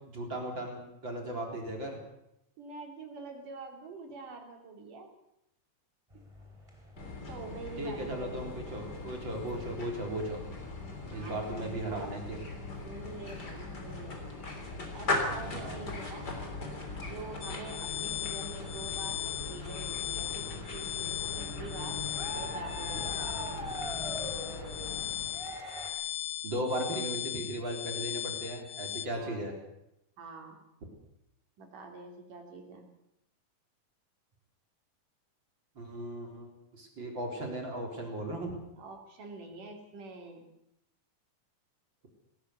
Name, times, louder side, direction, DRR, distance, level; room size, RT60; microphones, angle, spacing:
voice 1, 0.1-2.0 7.8-10.4 11.1-12.4 15.3-15.8 26.4-29.5 35.8-38.5, right 1 dB, 35° right, 1 dB, 4.4 m, -37 dB
voice 2, 2.6-5.1 7.3-8.8 11.1-12.2 12.8-14.2 14.9-16.3 16.9-22.0 22.3-23.6 29.1-29.5 30.2-30.6 31.6-32.9 38.8-40.5, right 3 dB, 80° right, 3 dB, 4.8 m, -46 dB
sound 1, 6.1-25.9, equal, 10° right, 3.4 m, -47 dB
sound 2, 7.0-25.6, left 2 dB, 30° left, 3.8 m, -40 dB
sound 3, 17.4-29.1, left 12 dB, 60° left, 2.2 m, -38 dB
19.5 x 17.0 x 8.2 m, 0.83 s
omnidirectional pair, 3.6 m